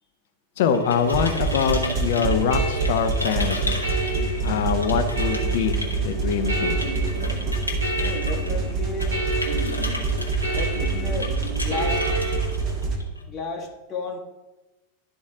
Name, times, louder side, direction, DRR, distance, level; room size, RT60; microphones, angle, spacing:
sound 1, 0.6-13.3, left 1 dB, 85° left, 1.2 m, -35 dB
voice 1, 0.6-3.8 4.4-6.8, left 6 dB, 55° left, 7 dB, 0.8 m, -24 dB
sound 2, 1.1-13.0, right 4 dB, 35° right, 1.4 m, -26 dB
sound 3, 1.8-12.4, right 1 dB, 70° right, 1.7 m, -31 dB
voice 2, 8.0-9.2 10.5-12.0 13.2-14.2, left 3 dB, 25° left, -1 dB, 1.1 m, -33 dB
11.5 x 4.1 x 3.8 m, 1.1 s
figure-of-eight pair, 90°, 0 cm